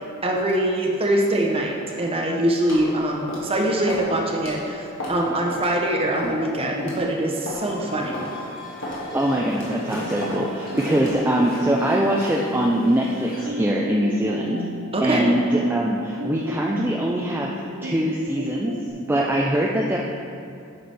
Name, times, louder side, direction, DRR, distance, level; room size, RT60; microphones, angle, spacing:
voice 1, 0.2-8.2 14.9-15.3, right 1 dB, 25° right, 0 dB, 0.8 m, -23 dB
sound 1, 2.7-2.9 3.3-3.5 3.9-4.1 4.4-4.5 5.0-5.2 5.5-5.7 6.2-6.4 6.8-7.0 7.5-7.6 8.1-8.3 8.8-9.0 9.5-9.7 10.2-10.4 10.9-11.2, left 1 dB, 65° left, 1.9 m, -32 dB
sound 2, 7.5-13.5, left 1 dB, 45° left, 1.6 m, -36 dB
voice 2, 9.1-14.6 15.0-18.7 19.1-20.0, right 1 dB, 10° right, -2 dB, 0.4 m, -23 dB
sound 3, 10.2-18.9, left 1 dB, 60° right, 0.7 m, -35 dB
9.2 x 5.9 x 3.4 m, 2.5 s
head